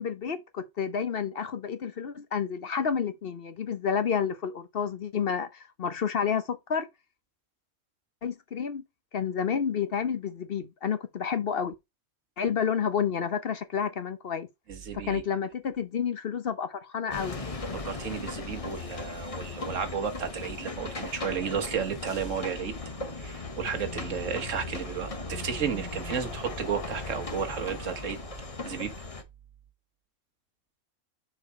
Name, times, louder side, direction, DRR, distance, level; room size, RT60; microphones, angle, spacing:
voice 1, 0.0-6.9 8.2-8.8 9.1-11.7 12.4-14.5 15.1-17.4, left 7 dB, 55° left, 0.9 m, -30 dB
voice 2, 14.7-15.2 17.7-22.7 23.1-28.2 28.6-28.9, right 7 dB, 80° right, 1.6 m, -33 dB
sound 1, 17.1-29.2, left 3 dB, 30° left, 1.1 m, -38 dB
6.5 x 4.6 x 4.6 m
omnidirectional pair, 1.3 m